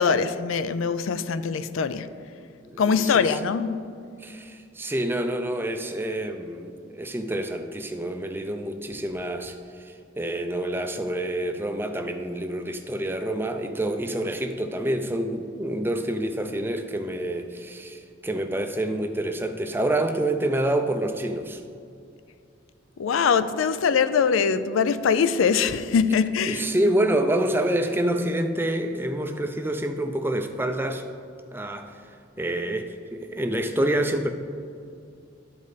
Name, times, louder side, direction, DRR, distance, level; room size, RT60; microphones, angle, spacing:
voice 1, 0.0-2.1 2.8-3.9 23.0-26.6, left 6 dB, 80° left, 0.4 m, -23 dB
voice 2, 2.6-3.3 4.2-21.6 26.5-31.1 31.5-32.0 32.4-34.3, right 1 dB, 10° right, 0.4 m, -27 dB
12.5 x 5.2 x 4.0 m
head